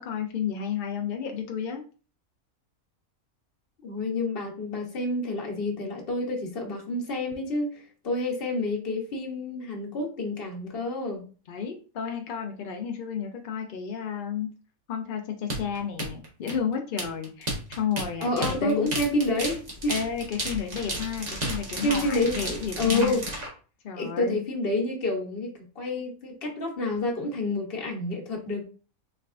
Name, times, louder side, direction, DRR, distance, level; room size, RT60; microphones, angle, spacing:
voice 1, 0.0-1.8 11.5-14.5 14.9-18.9 19.9-23.2 23.8-24.4, left 7 dB, 65° left, 0.5 m, -32 dB
voice 2, 3.8-11.2 18.2-19.9 21.8-23.2 23.9-28.6, left 2 dB, 45° left, 1.1 m, -29 dB
sound 1, 15.5-23.5, right 1 dB, 30° right, 1.1 m, -33 dB
3.9 x 3.4 x 2.4 m
omnidirectional pair, 1.5 m